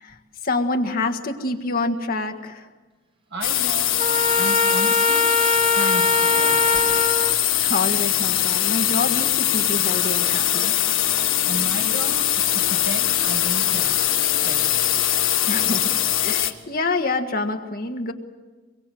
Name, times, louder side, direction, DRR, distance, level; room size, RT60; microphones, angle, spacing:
voice 1, 0.4-2.7 7.6-10.7 15.5-15.9 16.2-18.1, left 3 dB, 45° left, 5 dB, 1.7 m, -26 dB
voice 2, 3.3-4.0 4.4-5.4 5.7-7.2 11.4-14.0 14.4-14.8 15.0-15.2, right 1 dB, 60° right, 4 dB, 1.7 m, -34 dB
sound 1, 3.4-16.5, left 12 dB, 85° left, 1.6 m, -21 dB
Trumpet, 4.0-7.4, left 2 dB, 25° right, 0.9 m, -21 dB
24.5 x 23.0 x 7.8 m, 1.3 s
head